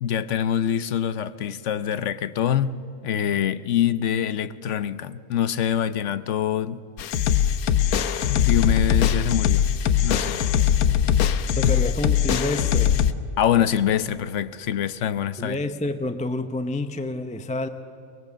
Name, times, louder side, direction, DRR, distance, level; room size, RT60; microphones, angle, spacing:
voice 1, 0.0-6.8 8.2-10.4 13.4-15.6, left 9 dB, 60° left, 1.0 m, -25 dB
sound 1, 7.0-13.1, left 9 dB, 80° left, 1.2 m, -21 dB
voice 2, 11.6-13.0 15.4-17.7, left 2 dB, 10° left, 0.4 m, -28 dB
23.0 x 21.5 x 7.4 m
omnidirectional pair, 1.5 m